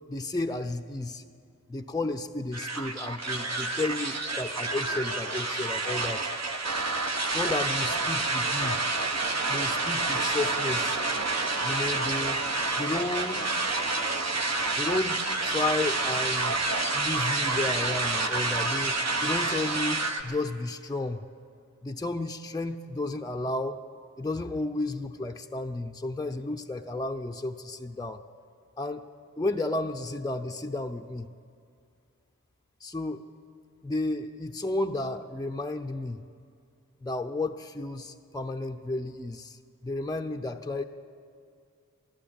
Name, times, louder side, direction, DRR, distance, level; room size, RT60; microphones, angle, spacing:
voice 1, 0.1-1.2 1.7-6.3 7.3-8.8 9.5-11.0 11.6-12.4 12.8-13.5 14.8-16.6 16.9-21.2 21.8-23.8 24.2-28.2 28.8-29.0 29.4-31.3 32.8-33.2 33.8-36.2 37.0-40.8, left 2 dB, 10° left, 5 dB, 0.6 m, -32 dB
sound 1, 2.5-20.2, right 3 dB, 55° right, 1.1 m, -28 dB
13.5 x 11.5 x 8.7 m, 2.3 s
wide cardioid pair, 45°, 31 cm